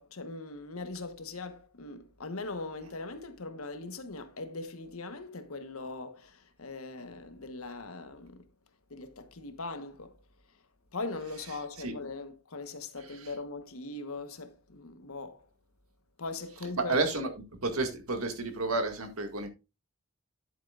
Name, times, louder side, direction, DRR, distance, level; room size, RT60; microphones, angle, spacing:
voice 1, 0.0-8.4 8.9-10.2 10.9-15.5 16.2-17.0, left 3 dB, 85° left, 1.2 m, -40 dB
voice 2, 16.8-17.3 17.6-19.5, right 3 dB, 90° right, 2.0 m, -30 dB
10.5 x 8.1 x 2.5 m
head